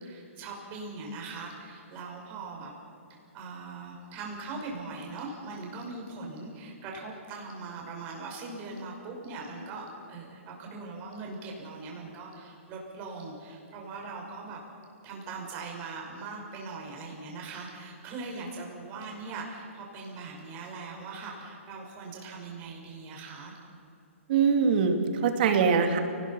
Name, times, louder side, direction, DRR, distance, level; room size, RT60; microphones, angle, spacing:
voice 1, 0.0-2.7 3.1-14.6 15.0-23.5, right 3 dB, 25° right, -1 dB, 5.8 m, -40 dB
voice 2, 24.3-26.0, right 6 dB, 45° right, 5 dB, 2.8 m, -23 dB
29.0 x 20.0 x 5.8 m, 2.7 s
hypercardioid pair, 150°, 7 cm